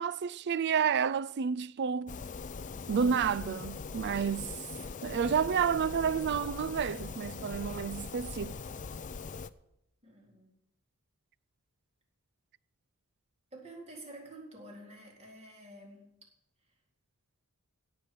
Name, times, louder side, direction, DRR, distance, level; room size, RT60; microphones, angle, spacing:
voice 1, 0.0-2.2 2.9-4.5 5.0-8.6, right 7 dB, 50° right, 0.4 m, -30 dB
sound 1, 2.1-9.5, left 4 dB, 35° left, 0.5 m, -41 dB
voice 2, 10.0-10.5 13.5-16.1, right 1 dB, 30° right, 3.8 m, -49 dB
17.0 x 6.2 x 8.3 m
head